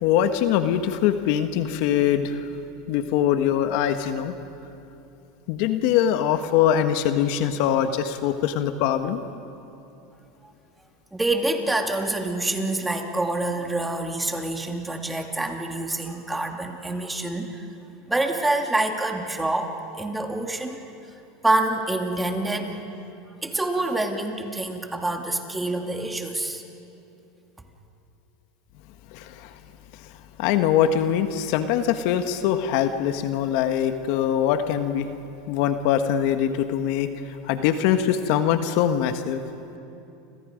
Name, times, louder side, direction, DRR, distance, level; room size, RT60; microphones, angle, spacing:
voice 1, 0.0-2.5 2.9-4.3 5.5-9.2 29.1-29.5 30.4-35.1 35.5-37.1 37.4-39.4, left 10 dB, 65° left, 8 dB, 1.5 m, -23 dB
voice 2, 11.1-17.7 18.1-20.9 21.4-22.9 23.4-26.6, right 2 dB, 10° right, 3 dB, 2.7 m, -26 dB
30.0 x 26.5 x 5.3 m, 2.8 s
hypercardioid pair, 105°, 0 cm